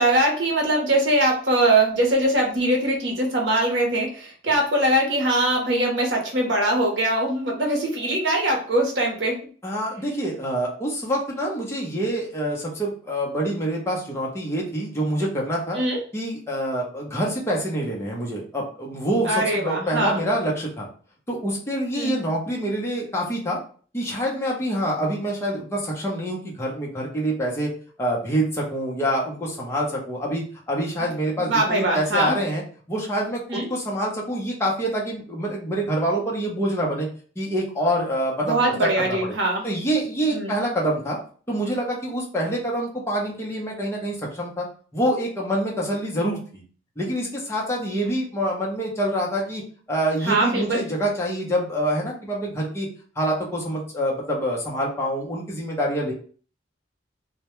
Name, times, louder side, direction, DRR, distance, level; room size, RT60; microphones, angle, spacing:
voice 1, 0.0-9.4 15.7-16.0 19.3-20.2 22.0-22.2 31.4-32.4 33.5-33.7 38.4-39.6 40.3-40.5 50.3-50.8, right 1 dB, 65° right, 0 dB, 0.8 m, -22 dB
voice 2, 9.6-15.8 16.1-20.9 21.3-23.6 23.9-27.7 28.0-32.6 32.9-37.1 37.4-39.2 39.6-41.2 41.5-44.7 44.9-46.6 47.0-49.6 49.9-52.9 53.2-56.1, right 1 dB, 15° left, -3 dB, 0.6 m, -26 dB
2.1 x 2.1 x 2.9 m, 0.43 s
head